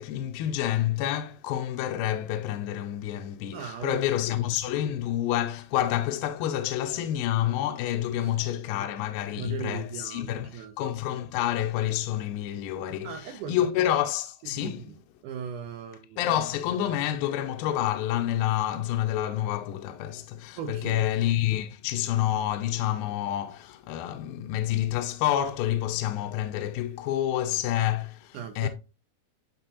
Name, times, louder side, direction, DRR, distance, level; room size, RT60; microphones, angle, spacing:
voice 1, 0.0-13.2 13.5-15.0 16.2-28.7, left 12 dB, 85° left, 2.4 m, -28 dB
voice 2, 3.5-4.0 8.1-8.6 9.3-10.8 13.0-13.7 14.4-15.0 15.2-16.2 20.6-21.1 28.3-28.7, right 8 dB, 75° right, 1.9 m, -38 dB
10.5 x 3.7 x 2.8 m
omnidirectional pair, 4.2 m